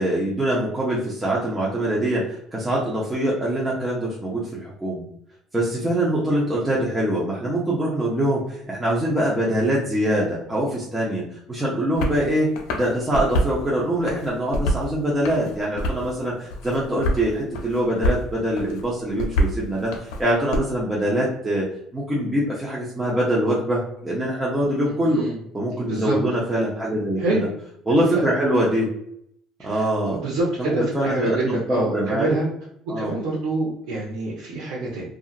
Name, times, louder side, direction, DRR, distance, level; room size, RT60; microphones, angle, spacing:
voice 1, 0.0-5.0 5.5-12.5 12.7-21.7 21.9-25.2 25.5-27.4 27.9-28.9 29.6-30.2 30.6-32.4 32.9-33.1, right 1 dB, 10° right, -6 dB, 0.7 m, -24 dB
sound 1, 12.0-12.2 12.6-13.6 14.0-14.9 15.2-16.1 16.5-17.2 17.5-18.2 18.6-20.6, equal, 85° left, 0.5 m, -25 dB
voice 2, 24.9-25.4 25.7-26.2 27.2-27.5 28.1-28.3 29.6-32.4 33.0-35.1, right 2 dB, 85° right, -7 dB, 0.9 m, -26 dB
2.8 x 2.4 x 2.4 m, 0.72 s
cardioid pair, 125°, 0 cm